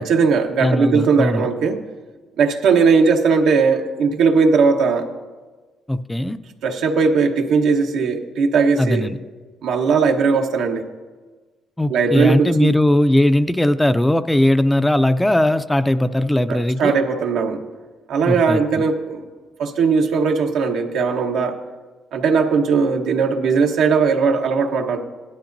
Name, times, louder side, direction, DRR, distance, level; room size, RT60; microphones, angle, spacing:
voice 1, 0.0-1.8 2.4-5.1 6.6-9.1 9.6-10.8 11.9-12.7 16.5-17.6 18.1-19.2 19.6-21.5 22.1-25.0, right 5 dB, 85° right, 3 dB, 1.0 m, -18 dB
voice 2, 0.6-1.5 5.9-6.4 8.8-9.2 11.8-17.0 18.3-18.6, left 1 dB, 10° left, 11 dB, 0.4 m, -18 dB
16.5 x 12.0 x 2.6 m, 1.3 s
cardioid pair, 90°, 0 cm